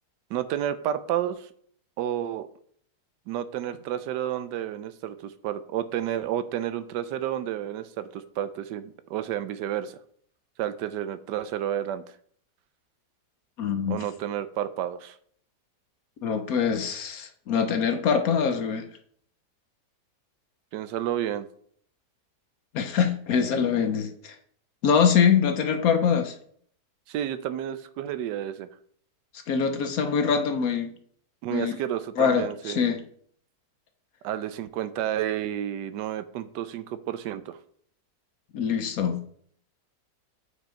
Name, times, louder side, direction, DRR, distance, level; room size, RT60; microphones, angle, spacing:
voice 1, 0.3-1.5 2.0-2.5 3.3-9.9 10.6-12.0 13.9-15.1 20.7-21.5 27.1-28.7 31.4-32.8 34.2-37.6, right 11 dB, 80° right, 13 dB, 1.2 m, -31 dB
voice 2, 13.6-14.0 16.2-18.9 22.7-24.3 24.8-26.3 29.5-30.9 31.5-31.7 32.2-33.0 38.5-39.4, left 7 dB, 60° left, 7 dB, 1.1 m, -24 dB
8.2 x 5.1 x 4.3 m, 0.62 s
omnidirectional pair, 1.8 m